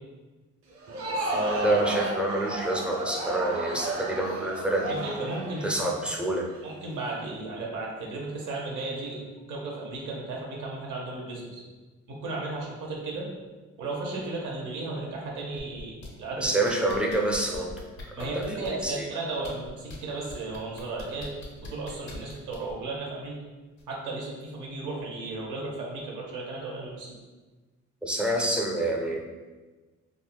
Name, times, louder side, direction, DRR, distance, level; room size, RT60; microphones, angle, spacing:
Crowd, 0.7-6.6, right 1 dB, 45° right, 0.7 m, -33 dB
voice 1, 1.1-1.8 4.8-5.9 6.6-9.2 9.5-11.6 12.1-13.3 13.8-16.5 18.2-21.3 21.6-23.4 23.9-27.1, right 2 dB, 80° right, -2 dB, 0.8 m, -34 dB
voice 2, 1.6-5.0 5.6-6.5 16.4-17.7 18.2-18.4 18.8-19.1 28.0-29.2, right 1 dB, 5° right, -2 dB, 0.4 m, -27 dB
sound 1, 15.6-16.1 16.4-18.9 19.4-20.0 20.3-22.7 23.8-23.9, left 2 dB, 70° left, 0.8 m, -43 dB
3.6 x 2.1 x 2.2 m, 1.2 s
cardioid pair, 90°, 30 cm